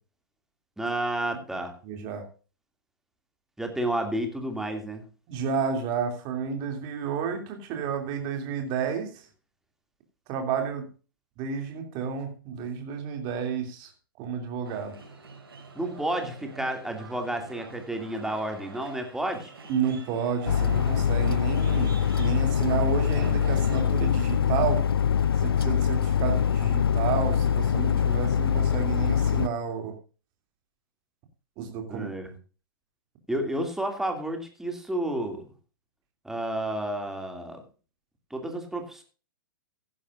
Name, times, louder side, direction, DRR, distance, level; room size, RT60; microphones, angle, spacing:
voice 1, 0.8-1.7 3.6-5.0 15.7-19.5 31.9-32.3 33.3-35.5 36.2-37.6 38.3-39.0, right 1 dB, 5° right, 4 dB, 2.6 m, -31 dB
voice 2, 1.8-2.2 5.3-9.1 10.3-10.8 11.4-13.9 14.2-14.9 19.7-24.8 25.4-29.9 31.6-32.1, right 6 dB, 40° right, 4 dB, 2.9 m, -31 dB
sound 1, 14.6-23.8, right 4 dB, 80° right, 6.0 m, -45 dB
sound 2, 20.5-29.5, left 8 dB, 80° left, 0.5 m, -24 dB
15.5 x 11.0 x 2.6 m, 0.35 s
hypercardioid pair, 115°, 12 cm